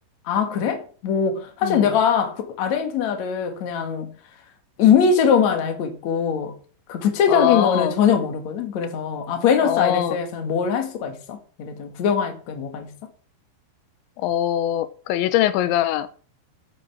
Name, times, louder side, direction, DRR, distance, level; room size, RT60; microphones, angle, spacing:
voice 1, 0.3-4.1 4.8-6.6 6.9-12.9, left 7 dB, 50° left, 2.5 m, -21 dB
voice 2, 7.3-7.9 9.6-10.2 14.2-16.1, left 12 dB, 90° left, 3.2 m, -22 dB
9.1 x 8.9 x 7.3 m
omnidirectional pair, 5.1 m